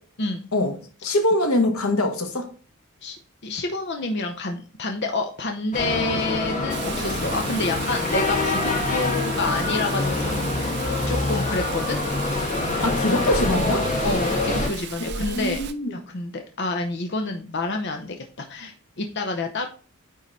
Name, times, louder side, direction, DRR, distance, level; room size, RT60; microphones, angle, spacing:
voice 1, 0.2-0.5 3.0-3.2 3.4-12.0 14.0-15.6 15.9-19.7, left 2 dB, 50° left, 0.8 m, -28 dB
voice 2, 1.0-2.5 12.8-13.9 15.1-16.0, left 1 dB, 85° left, 1.5 m, -23 dB
sound 1, 5.7-14.7, left 2 dB, 35° left, 1.7 m, -25 dB
Rain, 6.7-15.7, right 5 dB, 55° right, 0.7 m, -36 dB
9.3 x 3.8 x 4.1 m
head